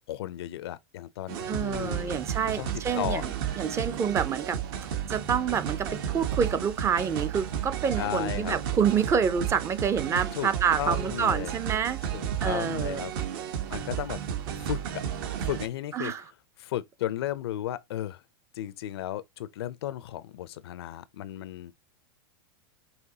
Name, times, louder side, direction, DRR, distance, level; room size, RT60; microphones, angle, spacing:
voice 1, 0.1-2.2 2.6-3.3 8.0-8.6 10.3-10.5 10.8-11.5 12.1-13.1 13.7-14.2 14.7-15.1 15.4-16.1 16.6-18.2 18.5-21.7, left 12 dB, 80° left, 0.6 m, -34 dB
sound 1, 1.3-15.7, right 9 dB, 65° right, 1.2 m, -33 dB
voice 2, 1.5-4.6 5.1-12.0 12.4-13.0 15.9-16.2, right 7 dB, 20° right, 0.5 m, -28 dB
5.7 x 3.0 x 2.8 m
supercardioid pair, 130°, 13 cm